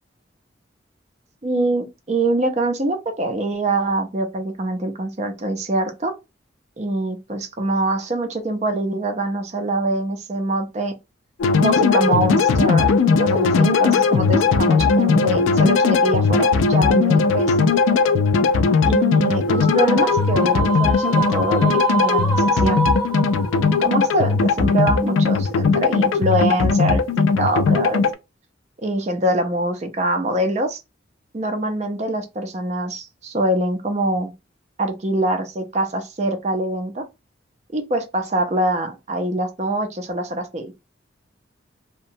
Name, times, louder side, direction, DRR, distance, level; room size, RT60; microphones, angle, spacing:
voice 1, 1.4-6.1 6.8-10.9 11.6-17.7 18.9-22.8 23.8-28.0 28.8-30.8 31.3-34.3 34.8-37.1 37.7-40.7, right 1 dB, 35° right, 0.5 m, -24 dB
sound 1, 11.4-28.1, left 4 dB, 90° left, 0.4 m, -18 dB
sound 2, 19.5-24.9, right 3 dB, 5° left, 0.9 m, -26 dB
2.8 x 2.2 x 2.6 m
head